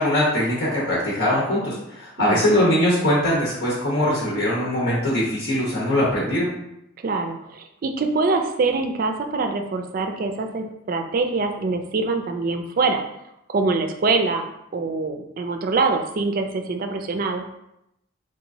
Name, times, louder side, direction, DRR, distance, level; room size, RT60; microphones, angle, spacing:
voice 1, 0.0-6.5, left 1 dB, 75° left, -7 dB, 1.0 m, -21 dB
voice 2, 7.0-13.0 13.5-14.5 14.7-17.4, right 3 dB, 45° right, 6 dB, 0.3 m, -24 dB
3.6 x 2.9 x 2.7 m, 0.84 s
head